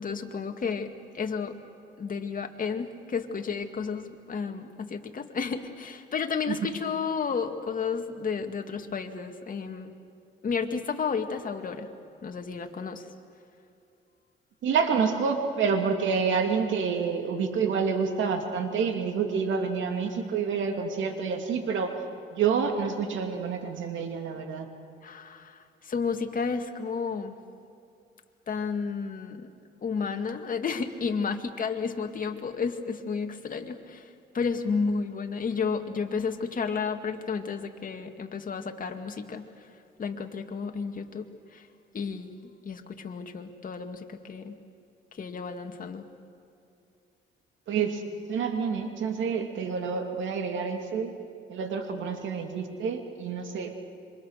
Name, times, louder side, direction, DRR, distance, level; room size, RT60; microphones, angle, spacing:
voice 1, 0.0-1.6 2.0-9.9 10.4-11.9 12.2-13.1 25.0-27.4 28.5-29.5 29.8-39.5 40.0-41.7 41.9-44.6 45.1-46.1, left 5 dB, 45° left, 5 dB, 2.1 m, -32 dB
voice 2, 14.6-22.0 22.3-24.7 47.7-48.0 48.3-51.1 51.5-53.7, right 6 dB, 75° right, 5 dB, 2.7 m, -28 dB
27.0 x 24.5 x 6.6 m, 2.6 s
cardioid pair, 90°, 20 cm